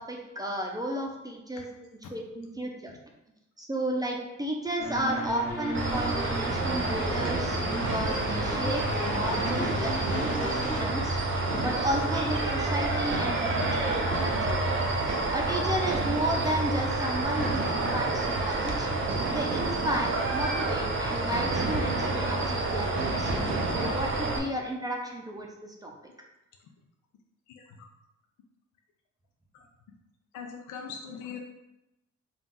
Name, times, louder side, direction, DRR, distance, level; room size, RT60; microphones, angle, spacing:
voice 1, 0.0-2.9 3.6-14.6 15.3-18.9 19.3-23.3 23.8-25.9, right 1 dB, 15° right, 0 dB, 0.6 m, -33 dB
sound 1, 4.8-10.8, equal, 25° left, 1.2 m, -34 dB
sound 2, 5.6-23.9, right 3 dB, 85° right, 1.1 m, -37 dB
sound 3, 5.7-24.4, right 2 dB, 40° right, 0.8 m, -29 dB
voice 2, 30.3-31.4, left 6 dB, 80° left, 2 dB, 0.5 m, -39 dB
3.8 x 2.4 x 3.6 m, 0.91 s
cardioid pair, 90°, 30 cm